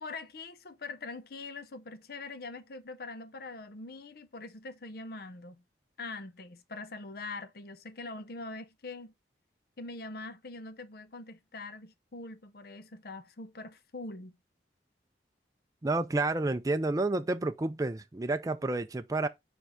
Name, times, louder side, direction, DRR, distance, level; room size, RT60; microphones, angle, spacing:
voice 1, 0.0-5.6 6.0-9.1 9.8-14.4, left 3 dB, 60° left, 0.7 m, -43 dB
voice 2, 15.8-19.3, right 2 dB, 20° right, 0.4 m, -30 dB
4.9 x 4.5 x 4.9 m
head